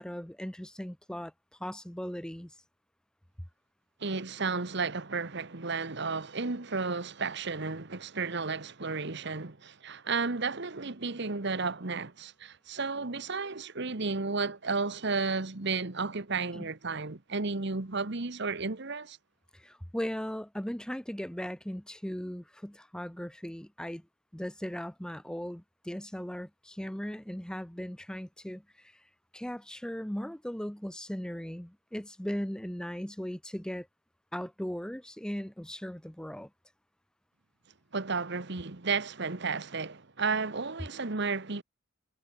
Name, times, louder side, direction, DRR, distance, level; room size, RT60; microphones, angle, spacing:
voice 1, 0.0-1.3 1.6-2.6 16.5-16.7 19.5-24.0 24.3-29.1 29.3-33.9 34.3-36.5, equal, 5° left, 0.7 m, -38 dB
voice 2, 4.0-19.2 37.9-41.6, right 4 dB, 60° right, 1.4 m, -33 dB
head